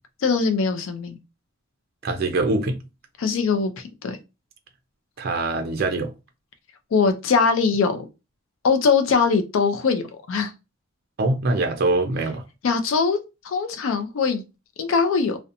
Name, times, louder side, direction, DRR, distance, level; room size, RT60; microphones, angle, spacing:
voice 1, 0.2-1.2 3.2-4.2 6.9-8.0 8.6-10.0 10.3-10.5 12.6-13.2 13.4-14.4 14.8-15.4, left 5 dB, 75° left, 0.4 m, -21 dB
voice 2, 2.0-2.8 5.2-6.1 11.2-12.4, right 2 dB, 50° right, 0.4 m, -23 dB
2.7 x 2.1 x 2.5 m
head